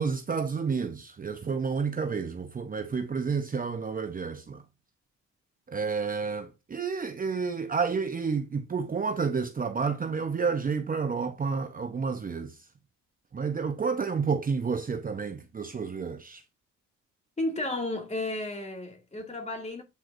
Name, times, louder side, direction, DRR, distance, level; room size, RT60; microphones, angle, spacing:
voice 1, 0.0-4.6 5.7-12.6 13.3-16.4, right 5 dB, 30° right, 0.7 m, -30 dB
voice 2, 17.4-19.8, left 2 dB, 20° left, 2.2 m, -33 dB
8.1 x 4.5 x 2.6 m
cardioid pair, 90°, 30 cm